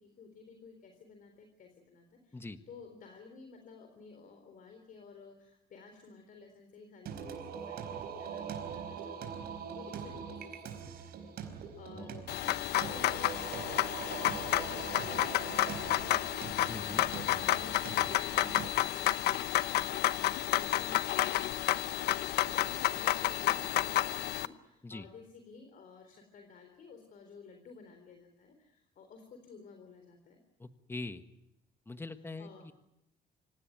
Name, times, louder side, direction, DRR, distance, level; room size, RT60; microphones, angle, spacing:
voice 1, 0.0-22.1 22.5-30.4 32.4-32.7, left 5 dB, 55° left, 5 dB, 3.9 m, -54 dB
Singing, 7.1-18.7, right 7 dB, 65° right, 4.4 m, -42 dB
sound 1, 12.3-24.5, left 14 dB, 75° left, 0.9 m, -31 dB
voice 2, 16.7-17.0 24.8-25.1 30.6-31.2 31.8-32.7, left 2 dB, 15° left, 9 dB, 1.5 m, -43 dB
26.0 x 17.0 x 9.3 m, 0.88 s
cardioid pair, 110°, 17 cm